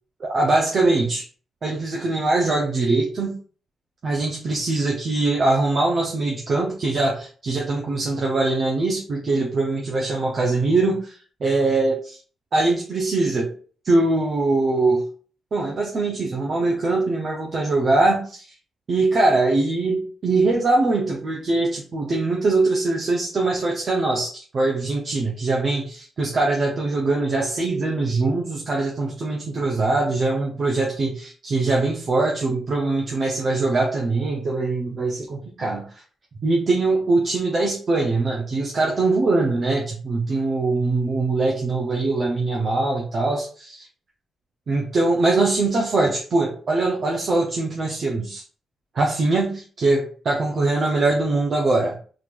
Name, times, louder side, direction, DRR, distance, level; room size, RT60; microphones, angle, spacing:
voice 1, 0.2-1.2 1.6-3.3 4.0-12.2 12.5-13.5 13.8-15.1 15.5-18.5 18.9-35.8 36.4-43.9 44.7-48.4 48.9-52.0, right 2 dB, 50° right, -2 dB, 0.7 m, -22 dB
3.9 x 3.2 x 2.5 m, 0.42 s
cardioid pair, 100°, 0 cm